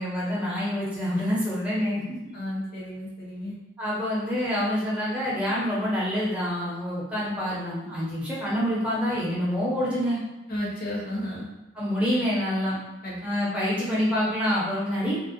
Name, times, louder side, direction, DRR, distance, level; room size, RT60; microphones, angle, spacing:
voice 1, 0.0-2.2 3.8-10.2 11.7-12.8 13.2-15.2, equal, 5° right, -8 dB, 0.6 m, -27 dB
voice 2, 2.3-3.5 10.5-11.5 13.0-13.2, left 1 dB, 50° left, -5 dB, 0.7 m, -33 dB
2.5 x 2.1 x 2.6 m, 1.0 s
head